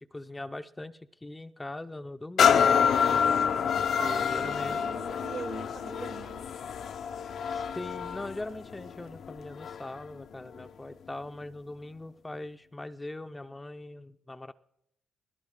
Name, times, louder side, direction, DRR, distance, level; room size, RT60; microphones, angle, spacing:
voice 1, 0.1-2.8 4.0-4.8 7.5-14.5, left 2 dB, 15° left, 9 dB, 0.4 m, -41 dB
sound 1, 2.4-10.0 10.6-10.7, left 7 dB, 65° left, 0.5 m, -27 dB
voice 2, 3.9-6.5, right 5 dB, 55° right, 13 dB, 0.9 m, -41 dB
19.5 x 17.0 x 3.6 m, 0.80 s
cardioid pair, 90°, 0 cm